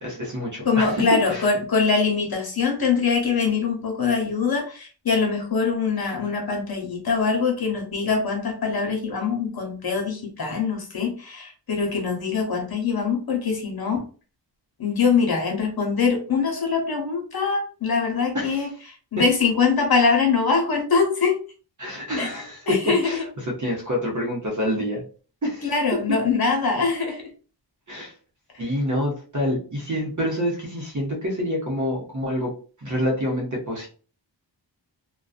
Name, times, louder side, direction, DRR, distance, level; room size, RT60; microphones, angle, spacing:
voice 1, 0.0-1.0 1.3-1.5 18.3-18.6 21.8-25.0 25.4-25.7 26.1-26.2 27.9-28.1 28.6-32.5 32.8-33.9, equal, 40° right, -2 dB, 0.8 m, -27 dB
voice 2, 0.6-14.0 14.8-18.7 19.1-21.4 22.2-22.3 22.7-23.0 25.6-27.3, left 5 dB, 55° left, 1 dB, 0.9 m, -23 dB
2.5 x 2.2 x 2.4 m, 0.39 s
wide cardioid pair, 100°, 44 cm